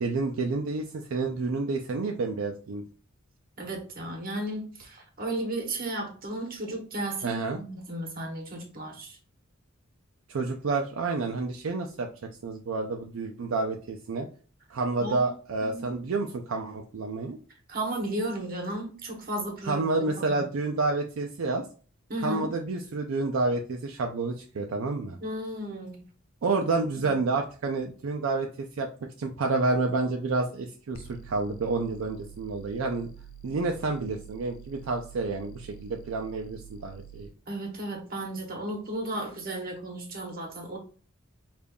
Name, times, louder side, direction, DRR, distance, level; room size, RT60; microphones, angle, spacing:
voice 1, 0.0-2.8 7.2-7.6 10.3-12.1 12.4-14.3 14.7-17.4 19.7-21.6 22.2-25.2 26.4-28.9 29.2-33.1 33.4-37.3, right 3 dB, 70° right, 2 dB, 0.4 m, -29 dB
voice 2, 3.6-9.2 15.0-15.3 15.6-15.9 17.7-20.4 22.1-22.5 25.2-26.1 37.5-40.8, right 1 dB, 45° right, 2 dB, 1.0 m, -34 dB
sound 1, 30.9-37.3, right 8 dB, 75° left, 0.3 m, -47 dB
5.1 x 2.5 x 2.2 m, 0.39 s
head